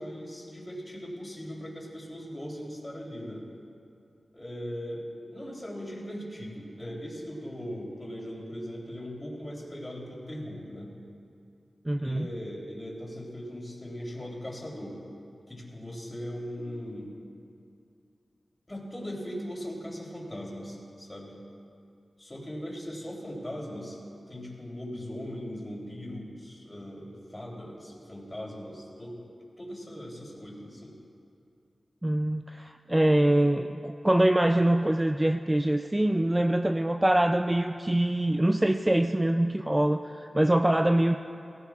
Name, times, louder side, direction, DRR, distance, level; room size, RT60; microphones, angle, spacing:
voice 1, 0.0-3.4 4.3-10.9 12.0-15.0 15.5-17.1 18.7-21.3 22.2-24.0 24.3-29.2 29.6-31.0, equal, 20° left, -3 dB, 3.4 m, -39 dB
voice 2, 11.9-12.3 32.0-41.2, right 1 dB, 15° right, 6 dB, 0.4 m, -24 dB
18.0 x 17.5 x 2.4 m, 2.5 s
wide cardioid pair, 70°, 0 cm